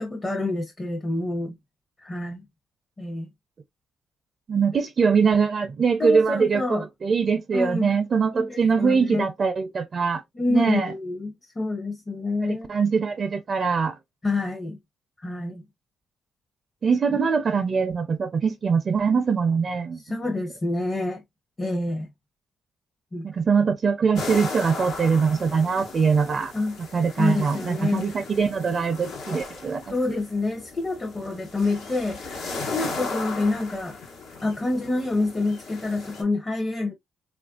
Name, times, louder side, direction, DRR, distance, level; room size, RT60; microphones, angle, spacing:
voice 1, 0.0-1.6 2.0-2.4 3.0-3.3 6.0-6.9 7.5-8.0 8.3-9.3 10.3-12.7 14.2-14.8 15.2-15.7 20.0-21.2 21.6-22.1 23.1-23.2 26.5-26.8 27.2-28.3 29.9-34.0 34.4-36.9, left 2 dB, 25° left, 0.7 m, -27 dB
voice 2, 4.5-10.2 10.5-10.9 12.7-14.0 16.8-20.0 23.2-26.5 26.9-29.8, right 5 dB, 45° right, 0.5 m, -22 dB
sound 1, 24.2-36.2, left 3 dB, 80° left, 1.1 m, -36 dB
3.1 x 2.5 x 2.3 m
cardioid pair, 90°, 0 cm